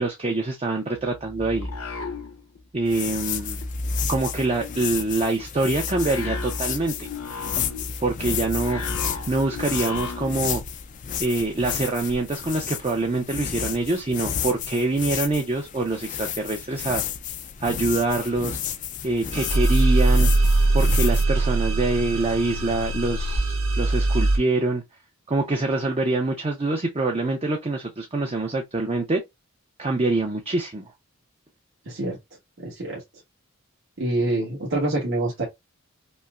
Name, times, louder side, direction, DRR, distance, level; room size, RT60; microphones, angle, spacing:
voice 1, 0.0-1.7 2.7-3.6 4.1-6.9 8.0-8.8 9.3-10.6 11.2-17.0 17.6-18.6 19.0-20.3 20.7-24.8 25.3-29.2 29.8-30.9, right 2 dB, 25° right, 0.5 m, -25 dB
sound 1, 1.0-2.8 3.1-10.6, left 2 dB, 75° left, 0.8 m, -34 dB
sound 2, 2.9-21.2, left 9 dB, 35° left, 0.3 m, -32 dB
sound 3, 19.3-24.4, right 2 dB, 75° right, 1.8 m, -21 dB
voice 2, 31.9-32.2 32.6-33.0 34.0-35.4, right 2 dB, 60° right, 1.2 m, -26 dB
5.3 x 2.0 x 2.3 m
head